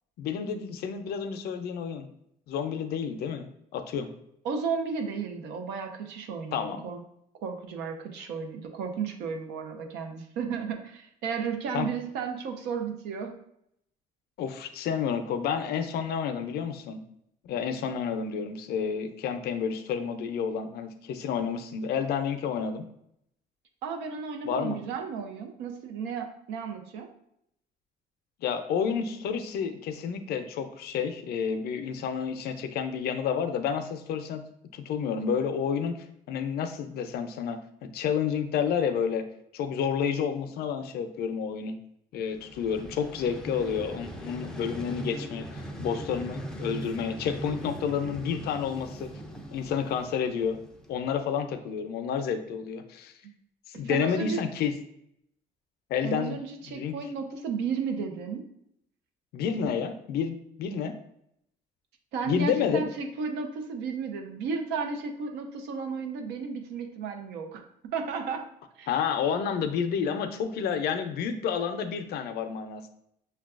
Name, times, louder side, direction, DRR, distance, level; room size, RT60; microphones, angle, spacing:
voice 1, 0.2-2.1 2.5-4.1 6.5-6.8 11.7-11.9 14.4-17.0 17.4-22.8 24.4-24.8 28.4-34.4 34.7-36.0 36.3-39.2 39.5-41.8 42.1-49.1 49.5-50.6 50.9-53.1 53.7-54.7 55.9-56.4 56.7-56.9 59.3-60.9 62.3-62.8 68.9-72.9, left 7 dB, 70° left, 8 dB, 0.4 m, -30 dB
voice 2, 4.4-7.0 7.4-13.3 23.8-27.1 53.8-54.4 56.0-58.4 62.1-67.6 67.9-68.4 68.8-68.9, right 5 dB, 85° right, 5 dB, 0.6 m, -33 dB
Vehicle, 42.3-51.3, right 1 dB, 5° left, 0.4 m, -40 dB
5.6 x 2.2 x 2.4 m, 0.75 s
cardioid pair, 110°, 17 cm